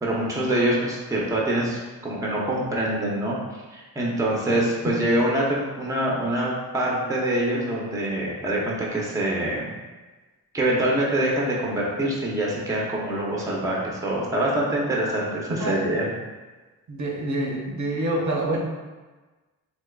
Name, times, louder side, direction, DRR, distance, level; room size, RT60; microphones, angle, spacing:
voice 1, 0.0-3.4 3.7-9.7 10.5-16.0, right 1 dB, 10° right, -4 dB, 0.6 m, -25 dB
voice 2, 16.9-18.6, right 1 dB, 50° right, -2 dB, 0.7 m, -27 dB
3.4 x 2.9 x 2.3 m, 1.3 s
cardioid pair, 90°, 37 cm